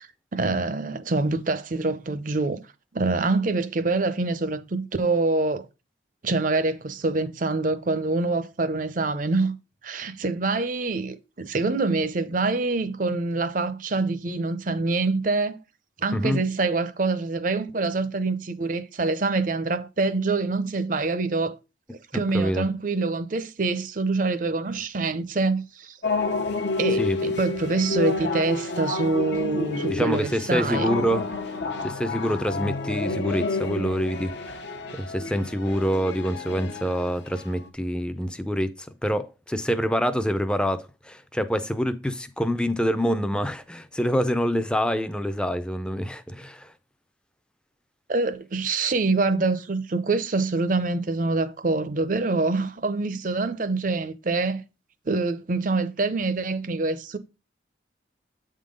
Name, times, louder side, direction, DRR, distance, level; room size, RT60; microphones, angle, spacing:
voice 1, 0.0-2.6 2.9-5.6 6.2-9.6 9.8-15.6 16.0-21.6 22.1-26.0 26.8-30.9 48.1-54.6 55.1-57.2, right 3 dB, 45° right, 0.6 m, -25 dB
sound 1, 26.0-37.7, left 3 dB, 70° left, 0.9 m, -29 dB
voice 2, 29.9-31.2 31.8-34.5 34.9-46.7, equal, 5° left, 0.5 m, -26 dB
8.2 x 3.7 x 5.1 m
head